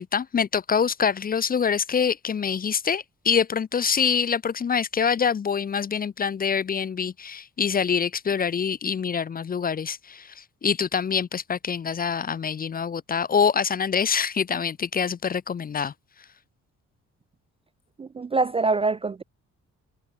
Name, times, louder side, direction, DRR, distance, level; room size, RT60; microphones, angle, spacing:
voice 1, 0.0-15.9, left 6 dB, 30° left, 0.5 m, -25 dB
voice 2, 18.0-19.2, right 3 dB, 20° right, 0.3 m, -24 dB
cardioid pair, 90°, 30 cm